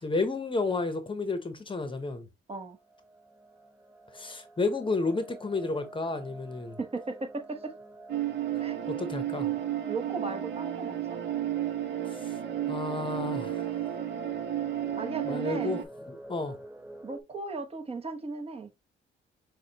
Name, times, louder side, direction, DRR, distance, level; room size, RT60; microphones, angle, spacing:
voice 1, 0.0-2.3 4.1-6.8 8.9-9.5 12.1-12.4 12.7-13.7 15.2-15.8 16.1-16.6, left 3 dB, 25° left, 0.9 m, -31 dB
sound 1, 2.7-17.2, right 1 dB, 5° right, 0.8 m, -48 dB
voice 2, 6.8-7.7 8.6-8.8 9.9-11.2 15.0-15.7 17.0-18.9, right 3 dB, 30° right, 1.1 m, -36 dB
sound 2, 8.1-15.8, right 12 dB, 60° right, 0.9 m, -32 dB
6.4 x 2.4 x 2.9 m
cardioid pair, 90°, 20 cm